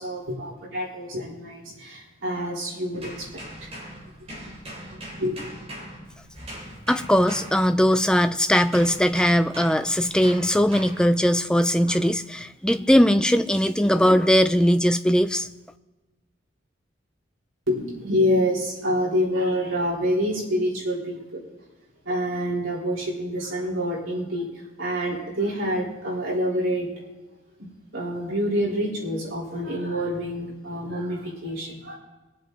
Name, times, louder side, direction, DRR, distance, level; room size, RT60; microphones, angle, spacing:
voice 1, 0.0-3.7 4.9-5.4 17.7-21.4 22.0-24.5 24.8-26.9 27.6-32.0, equal, 75° right, -5 dB, 4.0 m, -27 dB
sound 1, 2.9-8.2 8.7-11.2 11.9-12.2, equal, 30° right, 3.6 m, -40 dB
voice 2, 6.9-15.5, equal, 5° left, 9 dB, 0.3 m, -20 dB
21.5 x 7.7 x 4.0 m, 1.1 s
head